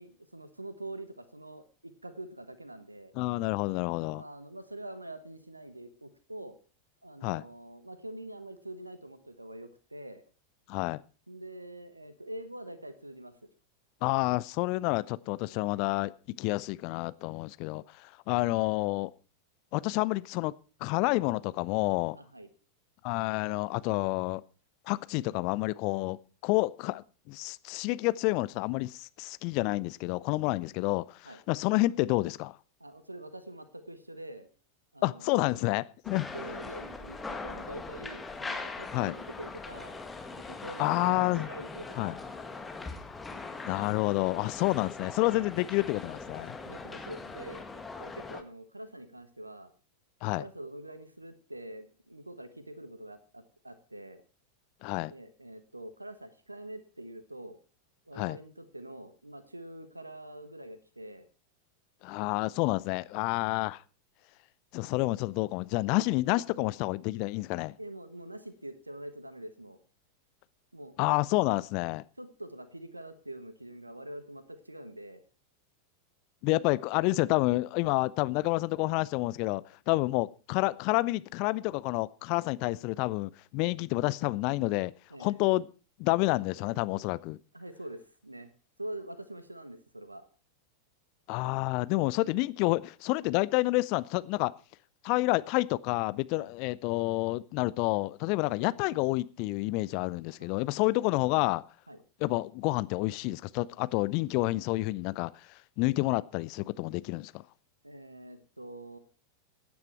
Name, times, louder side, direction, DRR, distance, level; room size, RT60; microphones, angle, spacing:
voice 1, 0.0-3.1 4.1-6.6 7.0-10.2 11.3-13.5 18.3-18.5 22.1-22.5 31.2-31.4 32.8-34.5 34.9-35.6 36.3-40.0 40.3-42.2 43.8-43.9 46.6-47.7 48.0-49.7 50.4-54.2 55.0-57.6 58.1-61.3 66.3-66.7 67.8-69.8 70.7-70.9 72.2-75.2 76.9-77.0 79.9-80.0 85.1-85.4 87.5-88.5 88.8-90.3 96.3-96.5 100.4-100.5 101.9-102.0 107.8-109.0, right 1 dB, 85° right, 1.2 m, -45 dB
voice 2, 3.2-4.2 7.2-7.4 10.7-11.0 14.0-19.1 19.7-20.5 20.8-22.2 23.0-24.4 24.9-26.2 26.4-32.6 35.0-36.3 38.9-39.1 40.8-41.5 42.0-42.2 43.6-46.6 50.2-50.4 54.8-55.1 58.2-58.4 62.0-63.8 64.7-67.7 71.0-72.0 76.4-84.9 85.2-85.7 86.0-87.4 91.3-94.5 95.0-101.6 102.2-105.3 105.8-107.4, left 21 dB, 45° left, 0.6 m, -29 dB
sound 1, 36.0-48.4, left 3 dB, 10° left, 1.7 m, -41 dB
16.0 x 9.6 x 4.5 m
figure-of-eight pair, 90°, 0 cm